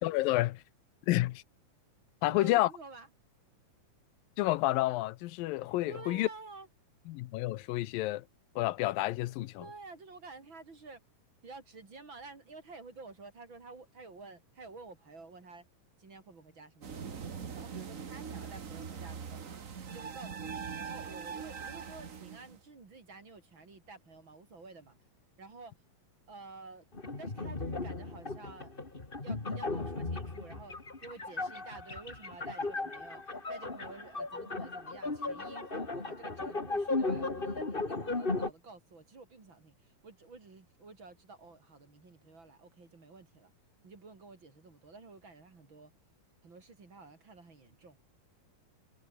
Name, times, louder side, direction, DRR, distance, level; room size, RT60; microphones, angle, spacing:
voice 1, 0.0-0.5 1.1-1.4 2.2-2.7 4.4-6.3 7.1-8.2 8.6-9.7, left 17 dB, 85° left, 2.5 m, -29 dB
voice 2, 2.2-3.1 5.9-6.7 9.6-11.0 11.4-15.7 16.0-17.2 17.5-19.4 19.9-25.0 25.4-25.8 26.3-26.9 27.2-28.7 29.2-30.8 31.0-43.5 43.8-45.9 46.4-48.0, right 3 dB, 35° right, 3.9 m, -51 dB
sound 1, 16.8-22.6, right 6 dB, 85° right, 0.7 m, -42 dB
sound 2, 26.9-38.5, left 3 dB, 15° left, 2.1 m, -36 dB
omnidirectional pair, 4.0 m